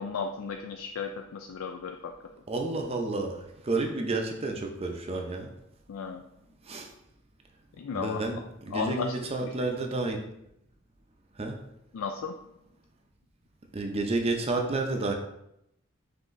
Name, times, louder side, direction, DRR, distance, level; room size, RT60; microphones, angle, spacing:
voice 1, 0.0-2.1 5.9-6.2 7.8-8.2 8.7-9.1 9.4-9.5 11.9-12.3, left 5 dB, 90° left, 4 dB, 0.3 m, -34 dB
voice 2, 2.5-5.5 6.6-6.9 7.9-10.3 11.4-11.6 13.7-15.1, right 2 dB, 30° right, 2 dB, 0.6 m, -30 dB
5.6 x 3.4 x 2.6 m, 0.80 s
head